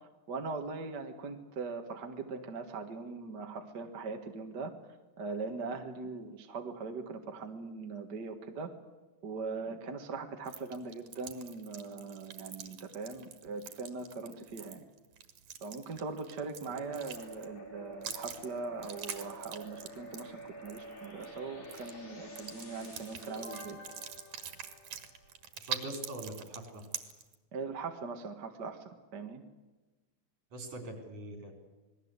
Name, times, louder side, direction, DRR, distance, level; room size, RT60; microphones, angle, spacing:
voice 1, 0.3-4.7 5.2-8.7 9.2-14.8 15.6-23.8 27.5-29.4, right 4 dB, 40° right, 5 dB, 2.0 m, -41 dB
sound 1, 10.4-17.6 18.0-21.4 21.6-21.9 22.4-27.3, right 9 dB, 85° right, 3.2 m, -44 dB
sound 2, 16.7-25.3, equal, 70° left, 6.5 m, -48 dB
voice 2, 25.6-26.8 30.5-31.5, right 1 dB, 65° right, 4 dB, 6.0 m, -43 dB
27.5 x 20.5 x 8.2 m, 1.2 s
omnidirectional pair, 3.4 m